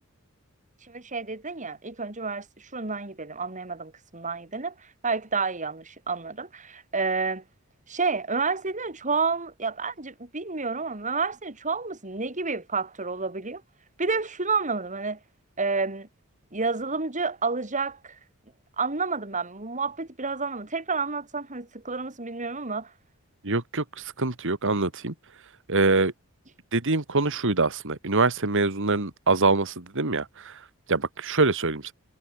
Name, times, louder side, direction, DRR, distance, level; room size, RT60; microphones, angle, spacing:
voice 1, 0.9-4.7 5.0-7.4 7.9-13.6 14.0-15.2 15.6-16.1 16.5-18.2 18.8-22.9, right 4 dB, 35° right, 3.4 m, -30 dB
voice 2, 23.4-25.1 25.7-26.1 26.7-30.6 30.9-31.9, right 3 dB, 60° right, 2.2 m, -24 dB
head